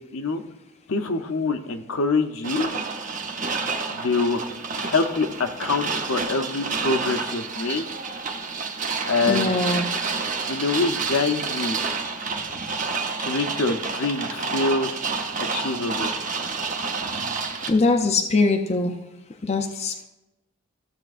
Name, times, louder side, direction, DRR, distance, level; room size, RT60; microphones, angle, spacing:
voice 1, 0.9-2.7 3.9-4.4 4.8-7.9 9.0-9.7 10.5-11.8 13.2-14.9 15.4-16.1, left 3 dB, 70° left, 6 dB, 0.7 m, -25 dB
sound 1, 2.4-17.7, right 4 dB, 35° right, 0.8 m, -29 dB
voice 2, 9.3-9.9 17.7-19.0 19.4-20.1, left 3 dB, 30° left, 4 dB, 0.5 m, -22 dB
14.5 x 6.9 x 2.5 m, 0.98 s
head